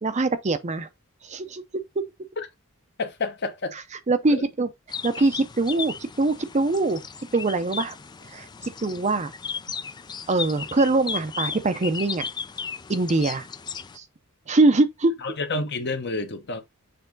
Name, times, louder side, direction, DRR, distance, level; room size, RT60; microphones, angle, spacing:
voice 1, 0.0-0.9 1.2-1.6 2.0-2.1 4.1-4.7 5.0-7.0 7.3-8.0 8.3-8.5 8.8-9.3 10.3-12.3 12.9-13.5 13.9-14.0 14.5-15.1, right 2 dB, 30° right, 0.6 m, -23 dB
voice 2, 3.0-3.8 4.3-4.5 15.2-16.6, left 3 dB, 50° left, 1.0 m, -29 dB
sound 1, 4.9-14.0, left 6 dB, 20° left, 0.3 m, -35 dB
6.8 x 3.5 x 3.9 m
head